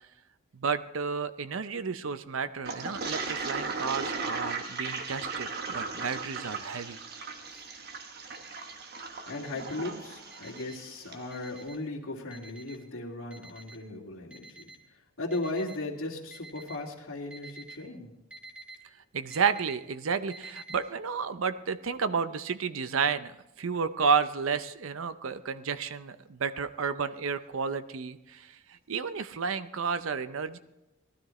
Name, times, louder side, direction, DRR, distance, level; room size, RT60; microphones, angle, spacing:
voice 1, 0.5-7.0 19.1-30.6, right 5 dB, 70° right, 12 dB, 0.6 m, -31 dB
Toilet flush, 2.6-11.2, right 4 dB, 50° right, 1.1 m, -37 dB
Alarm, 7.4-7.8 8.3-8.8 9.3-9.8 10.3-10.8 11.3-11.8 12.3-12.8 13.3-13.8 14.3-14.8 15.3-15.8 16.3-16.8 17.3-17.8 18.3-18.8 19.3-19.8 20.3-20.8, right 3 dB, 5° right, 1.6 m, -48 dB
voice 2, 9.3-18.1, left 2 dB, 70° left, -2 dB, 2.4 m, -37 dB
18.5 x 12.5 x 3.2 m, 0.95 s
head